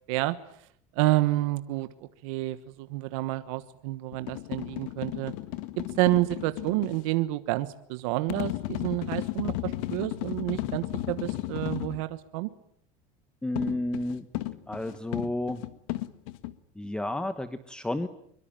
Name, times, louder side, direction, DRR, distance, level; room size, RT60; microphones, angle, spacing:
voice 1, 0.9-1.9 2.2-5.3 6.0-12.5, right 19 dB, 85° right, 12 dB, 1.3 m, -29 dB
sound 1, 4.1-7.0 8.3-12.0 13.6-16.5, left 17 dB, 85° left, 1.6 m, -34 dB
voice 2, 13.4-14.2 14.7-15.6 16.8-18.1, left 1 dB, 5° left, 11 dB, 1.1 m, -31 dB
23.5 x 23.0 x 9.0 m, 0.67 s
cardioid pair, 150°, 17 cm